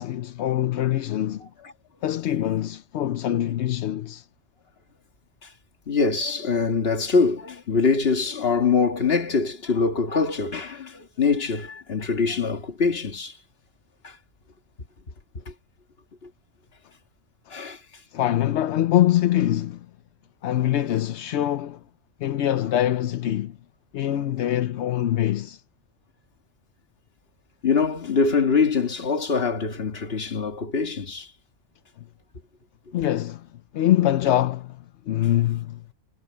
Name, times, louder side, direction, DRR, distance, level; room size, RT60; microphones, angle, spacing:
voice 1, 0.0-1.5 2.0-4.3 18.1-19.9 20.4-21.8 22.2-23.6 23.9-25.6 32.9-33.5 33.7-34.8 35.1-35.8, left 12 dB, 65° left, 0.8 m, -24 dB
voice 2, 5.9-13.4 14.0-14.2 15.5-15.6 16.2-16.3 17.5-17.8 27.6-31.3, left 5 dB, 50° left, 1.8 m, -23 dB
omnidirectional pair, 1.4 m